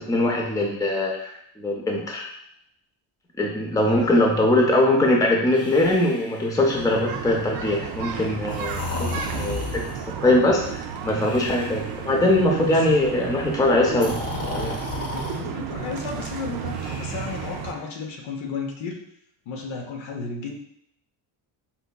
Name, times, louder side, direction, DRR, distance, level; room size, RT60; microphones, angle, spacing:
voice 1, 0.0-2.3 3.4-8.9 9.3-9.7 10.2-14.2 14.5-14.7, left 1 dB, 10° left, 0 dB, 0.5 m, -21 dB
voice 2, 3.8-4.2 12.7-12.8 15.1-19.0 19.5-20.6, left 5 dB, 75° left, 1 dB, 0.9 m, -33 dB
Breathing, 5.5-7.1 8.5-10.1 11.2-12.1 13.9-15.4 16.7-17.9, left 3 dB, 30° left, 0.9 m, -34 dB
sound 1, 6.7-17.7, right 7 dB, 50° right, 0.5 m, -33 dB
4.3 x 2.7 x 2.2 m, 0.72 s
cardioid pair, 105°, 47 cm